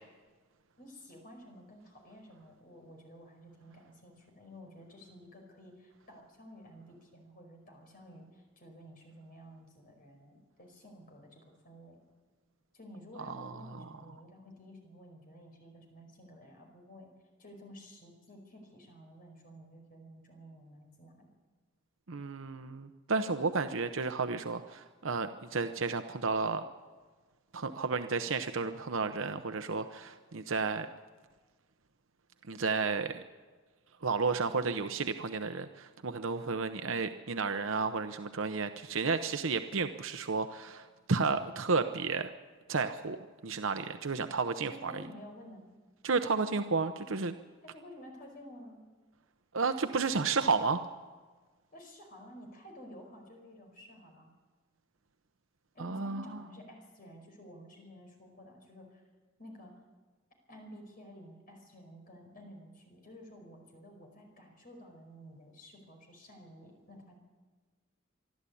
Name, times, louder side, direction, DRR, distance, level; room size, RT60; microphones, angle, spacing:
voice 1, 0.8-12.0 12.7-17.1 17.4-21.3 44.7-45.6 47.6-48.8 51.7-54.3 55.7-59.0 59.4-59.7 60.5-67.2, equal, 45° left, 3 dB, 5.1 m, -52 dB
voice 2, 13.3-13.8 22.1-26.6 27.5-30.9 32.5-33.2 34.0-42.3 42.7-43.2 43.4-45.0 46.0-47.3 49.5-50.8 55.8-56.4, right 4 dB, 80° right, 8 dB, 0.8 m, -32 dB
25.0 x 12.5 x 8.6 m, 1.4 s
head